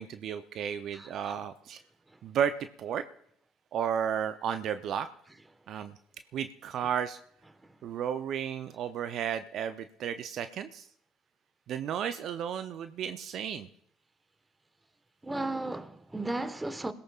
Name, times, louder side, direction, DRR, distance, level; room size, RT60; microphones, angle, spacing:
voice 1, 0.0-1.8 2.2-3.0 3.7-5.1 5.7-5.9 6.3-7.2 7.8-10.9 11.7-13.7, right 8 dB, 60° right, 0.6 m, -33 dB
voice 2, 15.2-16.9, right 2 dB, 15° right, 1.3 m, -34 dB
27.5 x 17.0 x 2.4 m
hypercardioid pair, 55°, 0 cm